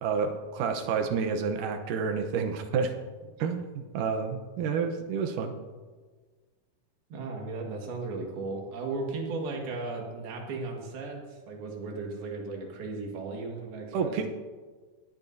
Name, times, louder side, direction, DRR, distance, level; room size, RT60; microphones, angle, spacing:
voice 1, 0.0-2.9 3.4-5.5 13.9-14.3, right 5 dB, 70° right, 6 dB, 2.3 m, -29 dB
voice 2, 7.1-14.2, right 3 dB, 85° right, 0 dB, 3.7 m, -36 dB
18.5 x 12.0 x 2.7 m, 1.4 s
omnidirectional pair, 4.2 m